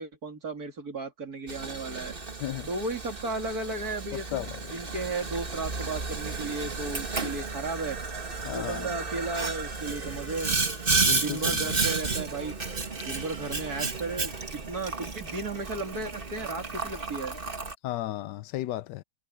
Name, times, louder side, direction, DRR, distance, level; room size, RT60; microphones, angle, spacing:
voice 1, 0.0-2.1 2.7-8.0 8.5-10.6 11.1-12.6 13.1-17.4, right 3 dB, 60° right, 3.3 m, -34 dB
Boiling, 1.5-17.7, right 3 dB, 30° right, 2.0 m, -32 dB
voice 2, 8.4-8.9 11.0-11.6 17.8-19.0, left 14 dB, 85° left, 1.2 m, -34 dB
omnidirectional pair, 1.8 m